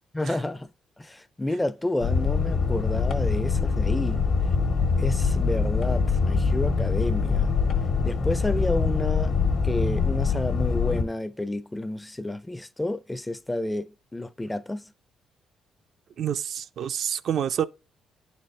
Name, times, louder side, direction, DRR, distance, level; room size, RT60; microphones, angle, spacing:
voice 1, 0.1-0.7 1.0-4.2 5.0-7.5 8.0-14.8, left 1 dB, 10° left, 0.4 m, -30 dB
sound 1, 2.0-11.0, left 5 dB, 65° left, 1.2 m, -24 dB
voice 2, 16.2-17.6, right 9 dB, 65° right, 0.3 m, -28 dB
10.5 x 4.1 x 3.2 m
cardioid pair, 90°, 0 cm